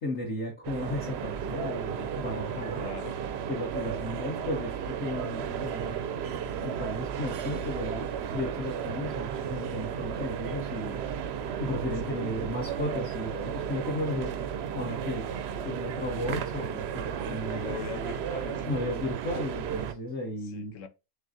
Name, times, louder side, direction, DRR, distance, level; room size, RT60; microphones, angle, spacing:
voice 1, 0.0-2.9 3.5-6.0 6.6-11.0 11.6-14.3 14.7-15.3 15.6-17.6 18.6-20.7, left 1 dB, 50° left, 1.4 m, -34 dB
sound 1, 0.6-19.9, right 8 dB, 65° right, 0.6 m, -34 dB
voice 2, 2.8-3.2 11.8-12.2 17.4-18.7 20.4-20.9, left 7 dB, 65° left, 0.9 m, -41 dB
6.1 x 3.3 x 2.6 m
omnidirectional pair, 1.5 m